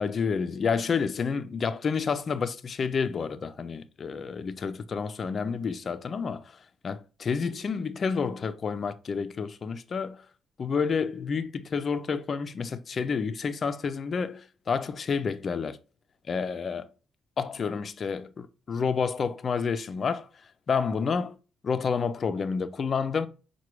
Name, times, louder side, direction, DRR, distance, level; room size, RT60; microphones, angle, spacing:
voice 1, 0.0-6.5 6.8-10.2 10.6-15.8 16.3-16.9 17.4-20.3 20.7-21.4 21.6-23.3, left 5 dB, 45° left, 0.4 m, -29 dB
4.6 x 2.2 x 3.0 m
cardioid pair, 90°, 0 cm